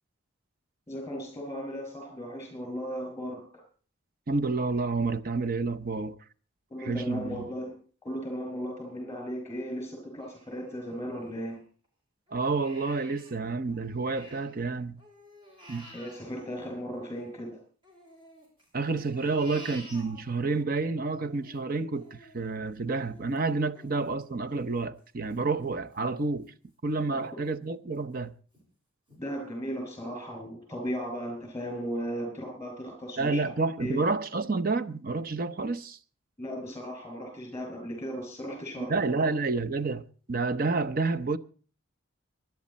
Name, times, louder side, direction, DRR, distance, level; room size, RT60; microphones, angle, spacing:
voice 1, 0.9-3.6 6.7-7.7 8.0-11.6 15.9-17.6 27.1-27.2 29.2-33.5 33.8-34.0 36.4-39.2, equal, 15° left, 5.9 m, -36 dB
voice 2, 4.3-6.2 6.8-7.4 12.3-15.0 15.7-15.9 18.7-26.5 26.8-28.3 33.2-36.0 38.8-41.4, right 3 dB, 45° right, 0.7 m, -29 dB
Crying sobbing, 10.2-11.9 12.3-14.7 15.0-17.4 17.8-20.6 21.0-26.5 26.9-27.0 27.5-28.0 28.5-28.6 29.1-29.2, equal, 25° right, 5.1 m, -52 dB
23.5 x 11.0 x 4.2 m
head